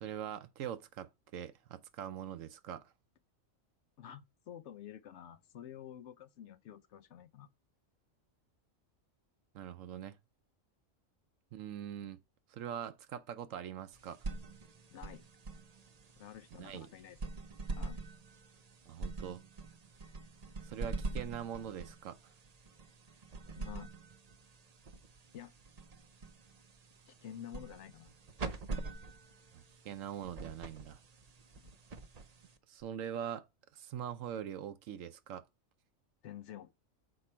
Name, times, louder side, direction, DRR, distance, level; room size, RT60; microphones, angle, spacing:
voice 1, 0.0-2.9 9.5-10.2 11.5-12.2 12.5-14.2 16.6-16.9 18.9-19.4 20.6-22.3 29.5-31.0 32.7-33.4 33.7-35.4, right 9 dB, 75° right, 1.0 m, -43 dB
voice 2, 4.0-7.5 14.9-15.2 16.2-17.3 17.8-18.1 23.6-23.9 25.3-25.5 27.1-28.1 31.6-31.8 36.2-36.7, left 10 dB, 65° left, 0.8 m, -50 dB
sound 1, 13.9-32.8, right 3 dB, 40° right, 0.6 m, -45 dB
6.7 x 4.7 x 4.3 m
omnidirectional pair, 1.4 m